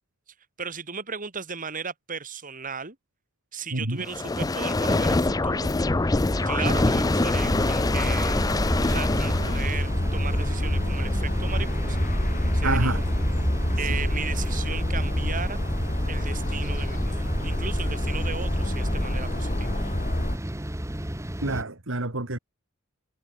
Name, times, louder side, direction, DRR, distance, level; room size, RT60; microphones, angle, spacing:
voice 1, 0.6-3.0 3.5-5.7 6.4-8.4 8.8-12.0 12.5-13.0 13.8-15.6 16.1-19.8, right 5 dB, 40° right, 2.6 m, -36 dB
voice 2, 3.7-4.0 12.6-13.0 13.8-14.0 21.4-22.4, right 2 dB, 65° right, 2.6 m, -28 dB
sound 1, 4.0-9.8, left 2 dB, 20° left, 0.5 m, -24 dB
sound 2, 6.3-21.6, right 1 dB, 15° right, 1.5 m, -33 dB
sound 3, 7.3-20.4, left 1 dB, 40° left, 2.6 m, -27 dB
head